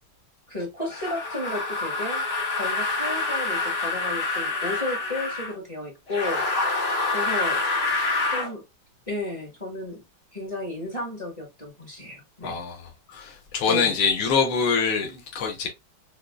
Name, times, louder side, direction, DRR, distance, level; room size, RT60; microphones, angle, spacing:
voice 1, 0.5-2.2 2.5-6.4 7.1-7.6 7.9-8.6 9.1-10.0 10.3-12.6 13.7-13.9, left 2 dB, 20° left, 1.3 m, -33 dB
sound 1, 0.9-5.5 6.1-8.5, left 3 dB, 35° left, 1.2 m, -27 dB
voice 2, 12.4-12.8 13.1-15.7, left 5 dB, 80° left, 1.8 m, -24 dB
6.4 x 2.3 x 2.3 m
omnidirectional pair, 2.2 m